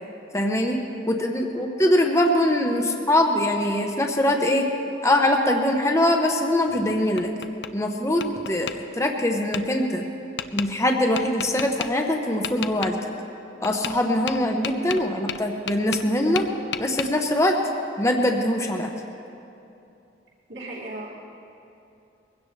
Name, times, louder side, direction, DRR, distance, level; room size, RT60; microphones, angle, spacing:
voice 1, 0.3-0.8 1.1-4.7 5.0-7.3 7.7-10.1 10.5-13.0 13.6-16.5 16.8-17.6 18.0-18.9, left 1 dB, 15° left, 2 dB, 0.9 m, -22 dB
Tap, 6.7-7.7 8.2-8.8 9.5-9.6 10.4-10.7 11.2-11.9 12.4-12.9 13.6-14.0 14.3-16.1 16.4-17.1, left 8 dB, 70° left, 0.5 m, -32 dB
voice 2, 20.5-21.1, right 1 dB, 80° right, -5 dB, 2.6 m, -36 dB
22.0 x 16.5 x 3.3 m, 2.8 s
head